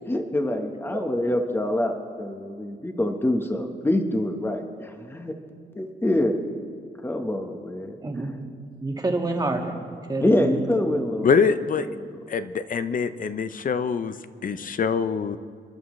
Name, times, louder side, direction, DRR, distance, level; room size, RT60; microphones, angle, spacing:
voice 1, 0.1-5.3 5.7-6.4 7.0-8.0 10.2-11.5 11.9-12.1, left 1 dB, 10° left, 4 dB, 1.1 m, -25 dB
voice 2, 8.0-8.5 8.8-11.0, right 2 dB, 20° right, 2 dB, 1.6 m, -28 dB
voice 3, 11.2-11.9 12.3-14.1 14.4-15.4, left 5 dB, 45° left, 12 dB, 0.6 m, -24 dB
30.0 x 11.0 x 3.2 m, 2.2 s
wide cardioid pair, 125°, 19 cm